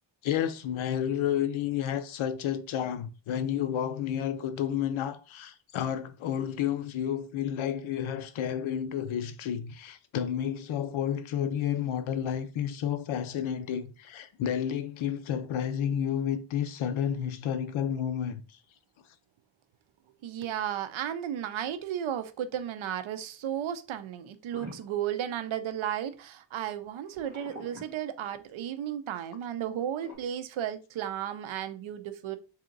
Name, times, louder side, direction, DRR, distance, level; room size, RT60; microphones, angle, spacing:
voice 1, 0.2-18.4, left 9 dB, 90° left, 0.6 m, -31 dB
voice 2, 20.2-32.4, right 10 dB, 85° right, 0.6 m, -34 dB
sound 1, 24.5-25.9 27.1-28.7 30.0-30.1, equal, 30° right, 1.4 m, -47 dB
3.6 x 2.8 x 3.8 m
wide cardioid pair, 175°, 47 cm